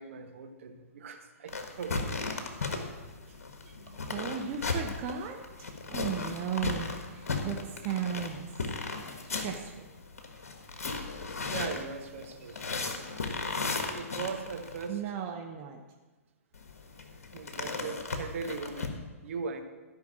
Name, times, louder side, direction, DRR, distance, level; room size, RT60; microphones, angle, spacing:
voice 1, 0.0-2.1 3.3-3.4 3.6-3.9 9.2-9.4 10.8-12.6 13.9-15.0 17.3-19.6, right 5 dB, 60° right, 5 dB, 1.5 m, -40 dB
sound 1, 1.5-14.9 16.5-18.9, left 4 dB, 70° left, 1.6 m, -36 dB
voice 2, 3.9-8.6 9.3-9.9 14.9-15.8, right 8 dB, 35° right, 3 dB, 1.0 m, -36 dB
13.5 x 5.7 x 7.5 m, 1.2 s
figure-of-eight pair, 120°, 8 cm